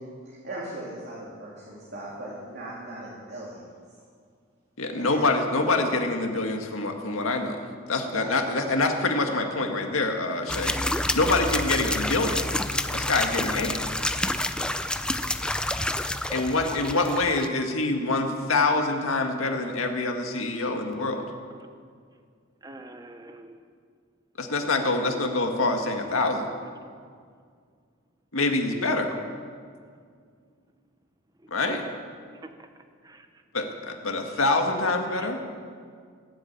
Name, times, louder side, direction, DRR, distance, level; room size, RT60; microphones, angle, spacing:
voice 1, 0.0-3.7 5.0-5.2 5.6-6.0 8.1-8.3, right 1 dB, 55° right, -6 dB, 3.2 m, -38 dB
voice 2, 4.8-12.4 12.9-13.8 16.3-21.3 24.4-26.5 28.3-29.1 31.5-31.8 33.5-35.4, left 2 dB, 85° left, 3 dB, 1.9 m, -26 dB
sound 1, 10.5-17.5, left 1 dB, 5° left, 0.5 m, -28 dB
voice 3, 22.6-23.6 31.6-32.0 33.0-33.3 35.1-35.3, right 1 dB, 20° right, 7 dB, 0.9 m, -45 dB
18.0 x 8.4 x 8.8 m, 2.1 s
head